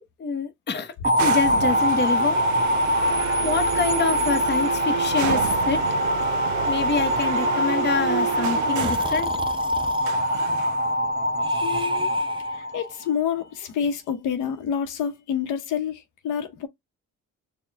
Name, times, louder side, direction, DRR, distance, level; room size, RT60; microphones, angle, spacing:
voice 1, 0.2-0.9 1.2-2.4 3.4-6.0 6.7-9.3, left 4 dB, 35° left, 0.9 m, -26 dB
sound 1, 1.0-13.2, left 1 dB, 35° right, 1.1 m, -24 dB
sound 2, 1.2-9.2 10.0-11.0, right 13 dB, 75° right, 0.5 m, -30 dB
Breathing, 8.8-10.1 11.4-12.7, right 3 dB, 15° right, 0.6 m, -36 dB
voice 2, 11.5-12.1 12.5-16.7, left 8 dB, 85° left, 0.8 m, -28 dB
4.2 x 2.2 x 3.4 m
cardioid pair, 90°, 30 cm